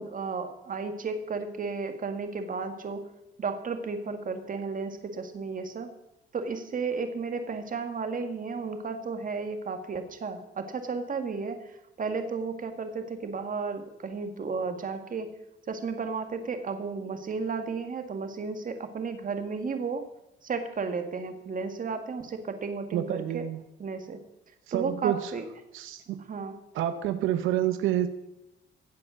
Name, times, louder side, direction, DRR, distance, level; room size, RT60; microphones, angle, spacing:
voice 1, 0.0-3.1 3.4-5.9 6.3-15.3 15.7-20.1 20.4-23.4 23.8-24.2 24.7-25.4 26.3-26.5, right 4 dB, 45° right, 7 dB, 1.8 m, -33 dB
voice 2, 22.9-23.6 24.7-25.3 25.7-26.2 26.7-28.1, right 12 dB, 85° right, 10 dB, 0.7 m, -28 dB
15.5 x 7.6 x 6.3 m, 0.88 s
cardioid pair, 90°, 20 cm